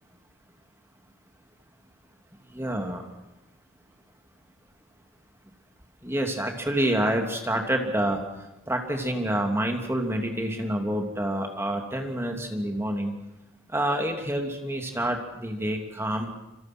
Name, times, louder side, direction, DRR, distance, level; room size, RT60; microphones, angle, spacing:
voice 1, 2.5-3.1 6.0-8.2 8.7-13.1 13.7-16.4, right 1 dB, 10° right, 3 dB, 2.9 m, -27 dB
26.5 x 26.5 x 6.2 m, 0.92 s
head